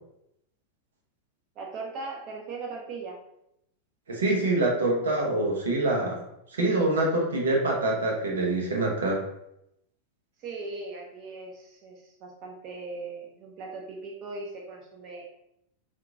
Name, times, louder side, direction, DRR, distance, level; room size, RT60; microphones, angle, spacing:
voice 1, 1.5-3.2 10.4-15.2, right 3 dB, 35° right, -1 dB, 0.9 m, -39 dB
voice 2, 4.1-6.2 6.5-9.2, right 2 dB, 65° right, -1 dB, 0.9 m, -25 dB
2.8 x 2.6 x 3.5 m, 0.78 s
figure-of-eight pair, 90°, 0 cm